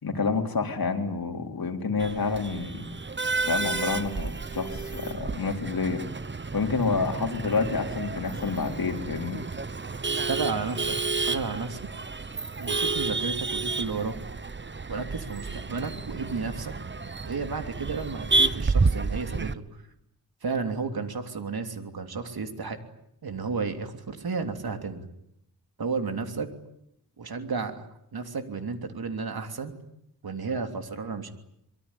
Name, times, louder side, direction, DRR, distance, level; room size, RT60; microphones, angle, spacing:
voice 1, 0.0-2.9 3.5-6.0 6.5-9.4, left 4 dB, 70° left, 3 dB, 3.9 m, -28 dB
Male speech man speaking / Laughter / Chatter, 2.0-19.5, right 3 dB, 30° right, 1.0 m, -30 dB
voice 2, 10.3-11.0 11.3-11.9 12.6-14.1 14.9-16.7 17.2-19.8 20.4-22.8 23.2-25.1 25.8-26.5 27.2-29.7 30.2-31.3, right 4 dB, 80° right, 7 dB, 3.2 m, -32 dB
24.5 x 23.0 x 10.0 m, 0.77 s
wide cardioid pair, 85°, 36 cm